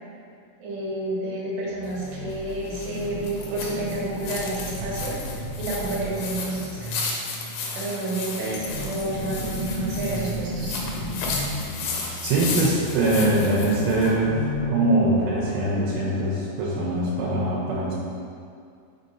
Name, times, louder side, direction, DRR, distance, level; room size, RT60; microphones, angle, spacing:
voice 1, 0.6-5.2 5.6-6.9 7.7-10.8, right 2 dB, 65° right, -7 dB, 3.3 m, -30 dB
sound 1, 1.7-15.7, equal, 65° left, 3.3 m, -34 dB
sound 2, 1.8-14.2, left 4 dB, 85° left, 3.2 m, -34 dB
voice 2, 12.2-14.4 14.7-17.9, right 1 dB, 90° right, -6 dB, 3.4 m, -22 dB
6.4 x 6.2 x 2.7 m, 2.4 s
omnidirectional pair, 5.9 m